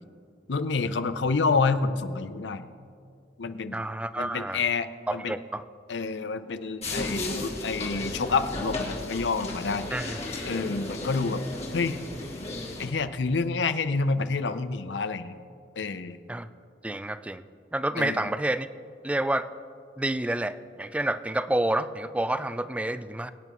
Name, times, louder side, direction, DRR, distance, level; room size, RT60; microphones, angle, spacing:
voice 1, 0.5-2.7 3.4-3.8 4.2-5.4 5.9-10.1 10.4-11.4 11.7-12.0 12.8-15.3 15.8-16.2 18.0-18.3, left 4 dB, 90° left, 12 dB, 0.6 m, -28 dB
voice 2, 3.7-4.6 5.1-5.6 9.9-10.2 16.3-16.5 16.8-17.4 17.7-18.7 19.0-19.5 20.0-23.3, right 1 dB, 10° right, 13 dB, 0.3 m, -29 dB
sound 1, 6.8-12.9, left 2 dB, 40° left, 1.9 m, -34 dB
23.5 x 9.1 x 3.1 m, 2.3 s
head